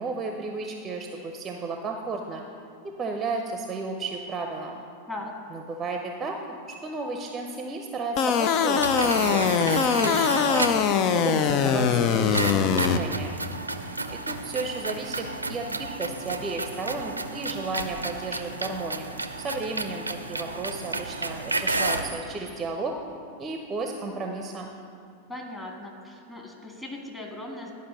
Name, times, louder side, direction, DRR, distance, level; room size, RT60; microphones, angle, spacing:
voice 1, 0.0-2.4 2.8-4.8 5.5-10.7 11.1-13.4 13.8-23.0 23.4-24.7, right 3 dB, 20° right, 3 dB, 0.7 m, -33 dB
sound 1, 8.2-13.0, left 7 dB, 40° left, 0.5 m, -22 dB
sound 2, 8.8-10.9 12.3-22.1, right 2 dB, 80° right, 0.5 m, -31 dB
voice 2, 25.3-27.7, left 1 dB, 10° left, 0 dB, 1.8 m, -38 dB
11.0 x 5.4 x 6.5 m, 2.4 s
figure-of-eight pair, 90°, 0 cm